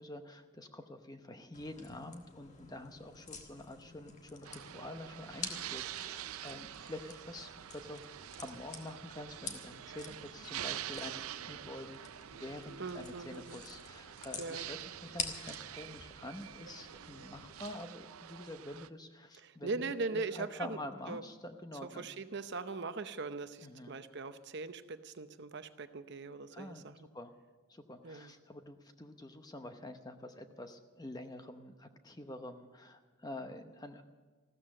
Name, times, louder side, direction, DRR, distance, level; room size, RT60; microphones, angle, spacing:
voice 1, 0.0-8.0 8.4-12.0 12.3-22.1 23.6-24.0 26.5-26.8 27.1-27.3 27.7-34.0, left 1 dB, 20° left, 7 dB, 0.9 m, -47 dB
sound 1, 1.5-17.7, left 4 dB, 35° left, 1.5 m, -49 dB
sound 2, 4.4-18.9, right 11 dB, 85° right, 0.5 m, -46 dB
voice 2, 12.8-13.6 14.4-14.7 19.4-20.8 21.1-21.2 21.8-26.9 28.0-28.3, right 3 dB, 55° right, 10 dB, 0.8 m, -40 dB
15.0 x 13.5 x 6.5 m, 1.4 s
head